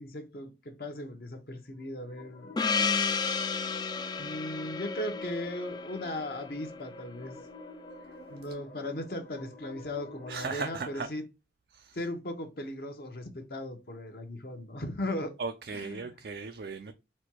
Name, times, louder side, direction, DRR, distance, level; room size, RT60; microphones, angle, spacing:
voice 1, 0.0-2.6 4.2-7.4 8.3-11.2 11.9-15.3 15.7-16.1, left 1 dB, 55° left, 0.8 m, -37 dB
sound 1, 1.7-11.1, left 2 dB, 75° left, 1.2 m, -49 dB
Gong, 2.6-7.3, left 5 dB, 25° left, 0.3 m, -32 dB
voice 2, 10.3-11.1 11.7-12.0 15.4-16.9, right 4 dB, 60° right, 0.4 m, -37 dB
4.2 x 2.2 x 4.4 m
head